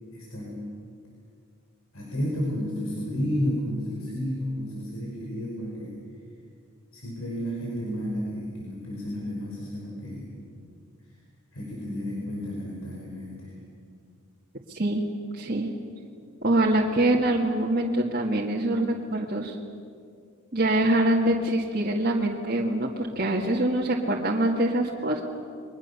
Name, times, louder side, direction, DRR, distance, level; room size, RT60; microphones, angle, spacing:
voice 1, 0.1-0.6 1.9-6.0 6.9-10.3 11.5-13.5, equal, 80° left, -3 dB, 5.4 m, -32 dB
voice 2, 14.7-15.0 15.3-15.7 16.4-19.6 20.5-25.2, right 1 dB, 45° right, -3 dB, 2.0 m, -24 dB
30.0 x 23.0 x 7.0 m, 2.3 s
head